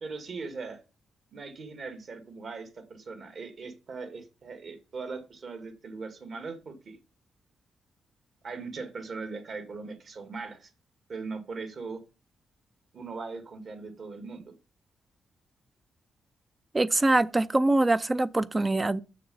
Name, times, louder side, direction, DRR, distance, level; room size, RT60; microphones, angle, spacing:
voice 1, 0.0-0.8 1.3-7.0 8.4-10.7 11.1-12.0 12.9-14.5, right 4 dB, 50° right, 2.0 m, -39 dB
voice 2, 16.7-19.0, right 2 dB, 20° right, 0.4 m, -24 dB
7.0 x 6.6 x 5.4 m
cardioid pair, 110°, 0 cm